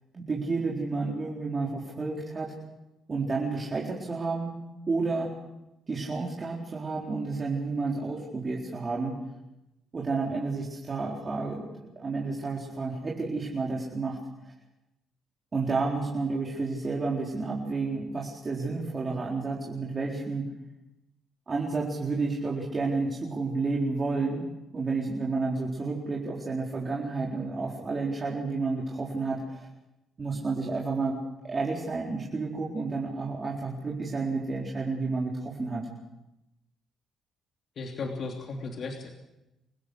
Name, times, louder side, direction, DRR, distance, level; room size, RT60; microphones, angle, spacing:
voice 1, 0.1-2.5 3.1-4.5 4.9-5.3 5.9-9.2 9.9-14.2 15.5-20.5 21.5-24.4 24.7-29.7 30.2-31.2 31.4-35.9, right 3 dB, 35° right, -3 dB, 4.3 m, -31 dB
voice 2, 37.8-39.1, left 3 dB, 55° left, 2 dB, 3.0 m, -35 dB
29.0 x 16.5 x 6.5 m, 0.93 s
cardioid pair, 90°, 0 cm